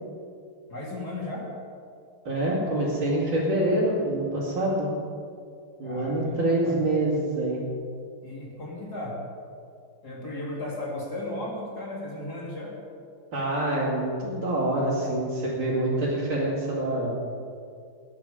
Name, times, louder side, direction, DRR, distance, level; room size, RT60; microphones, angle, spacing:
voice 1, 0.7-1.5 5.8-6.8 8.2-9.2 10.0-12.8, left 1 dB, 45° left, -3 dB, 3.5 m, -35 dB
voice 2, 2.2-4.9 5.8-7.6 13.3-17.2, right 1 dB, 60° right, -9 dB, 3.5 m, -26 dB
19.5 x 11.0 x 5.1 m, 2.3 s
omnidirectional pair, 2.4 m